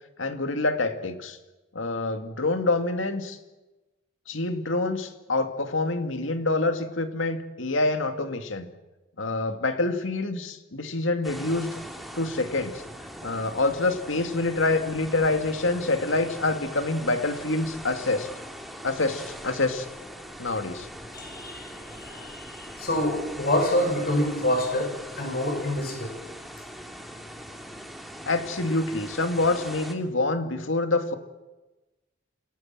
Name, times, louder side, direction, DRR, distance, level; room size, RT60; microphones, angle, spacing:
voice 1, 0.2-1.4 1.7-3.4 4.3-8.7 9.2-11.8 12.2-12.8 13.2-18.3 18.8-19.9 20.4-20.9 28.2-31.1, left 2 dB, 85° left, 7 dB, 2.3 m, -26 dB
sound 1, 11.2-29.9, equal, ahead, 2.7 m, -41 dB
voice 2, 21.1-26.2, left 1 dB, 55° left, 4 dB, 7.0 m, -27 dB
28.0 x 18.5 x 7.5 m, 1.1 s
head